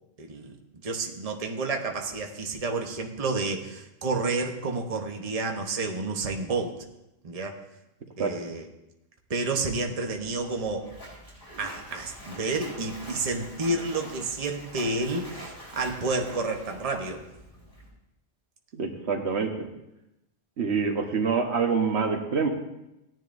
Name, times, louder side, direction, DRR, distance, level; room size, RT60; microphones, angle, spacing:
voice 1, 0.2-0.6 0.8-6.8 7.2-7.6 8.2-8.7 9.3-10.9 11.6-17.3, right 3 dB, 35° right, 3 dB, 1.0 m, -30 dB
Splash splatter, 10.0-17.9, equal, 50° left, 4.4 m, -45 dB
voice 2, 18.7-19.7 20.6-22.5, right 5 dB, 70° right, 4 dB, 1.4 m, -26 dB
17.5 x 10.5 x 2.6 m, 0.91 s
omnidirectional pair, 1.2 m